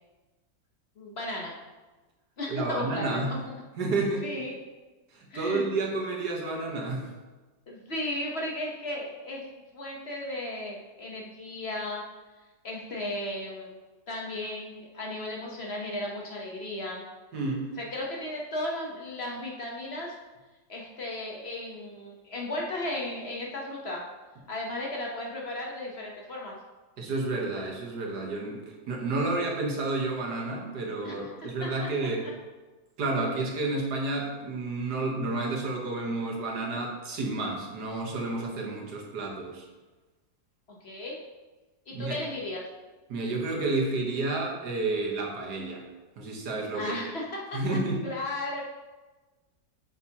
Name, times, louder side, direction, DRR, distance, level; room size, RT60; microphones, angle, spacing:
voice 1, 1.0-1.5 2.4-3.4 4.2-4.6 5.3-5.6 7.7-9.5 9.7-12.0 12.6-13.8 14.1-17.0 17.8-20.2 20.7-24.0 24.5-26.5 31.0-31.4 31.6-31.7 40.8-41.2 41.9-42.6 46.6-47.6 48.0-48.6, left 1 dB, 45° left, -2 dB, 1.2 m, -35 dB
voice 2, 2.5-3.3 3.8-4.3 5.1-7.1 17.3-17.7 27.0-32.3 33.0-39.6 41.9-42.2 43.1-45.8 46.2-47.0 47.5-48.0, right 2 dB, 85° right, 0 dB, 1.8 m, -30 dB
8.2 x 7.0 x 2.9 m, 1.2 s
omnidirectional pair, 1.7 m